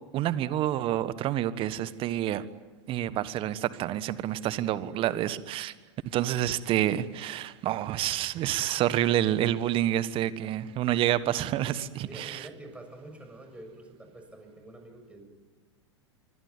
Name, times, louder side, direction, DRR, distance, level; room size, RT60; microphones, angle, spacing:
voice 1, 0.1-2.4 2.9-5.7 6.1-12.5, right 12 dB, 35° right, 15 dB, 1.4 m, -28 dB
voice 2, 12.0-15.3, right 2 dB, 10° right, 5 dB, 6.7 m, -47 dB
26.0 x 24.0 x 9.6 m, 1.3 s
figure-of-eight pair, 90°, 15 cm